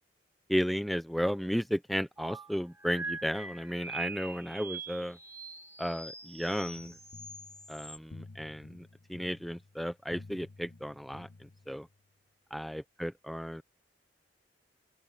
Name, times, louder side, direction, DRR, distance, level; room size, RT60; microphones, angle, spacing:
voice 1, 0.5-5.2 5.8-6.9 7.7-11.3 11.7-11.9 12.5-13.6, equal, ahead, 0.5 m, -34 dB
sound 1, 2.2-8.0, right 3 dB, 15° right, 2.7 m, -43 dB
sound 2, 6.7-12.0, left 2 dB, 60° left, 1.1 m, -52 dB
open air
head